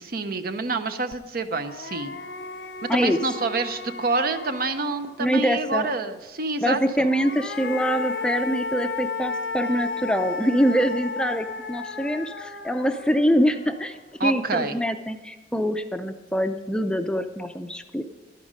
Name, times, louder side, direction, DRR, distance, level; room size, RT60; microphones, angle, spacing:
voice 1, 0.0-2.1 2.8-7.1 14.2-14.8, right 3 dB, 55° right, 9 dB, 0.7 m, -27 dB
sound 1, 1.1-1.2 1.6-5.2 6.9-14.2, left 4 dB, 75° left, 0.7 m, -34 dB
voice 2, 5.2-5.9 6.6-14.0 14.2-18.0, equal, 5° left, 7 dB, 0.5 m, -24 dB
11.5 x 9.4 x 5.1 m, 1.1 s
head